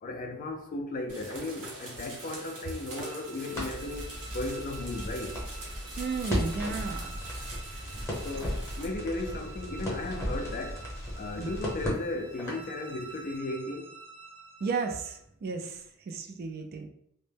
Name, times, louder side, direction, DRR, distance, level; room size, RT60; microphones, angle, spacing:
voice 1, 0.0-5.4 8.2-10.9 11.2-13.9, left 2 dB, 40° left, 0.3 m, -36 dB
sound 1, 1.1-8.9, right 2 dB, 65° right, 0.9 m, -45 dB
sound 2, 1.8-15.2, right 4 dB, 85° right, 0.6 m, -49 dB
Crackle, 3.5-12.7, equal, 10° left, 0.8 m, -36 dB
voice 2, 6.0-7.2 11.4-11.5 14.6-16.9, right 4 dB, 45° right, 0.3 m, -34 dB
2.1 x 2.0 x 3.2 m
head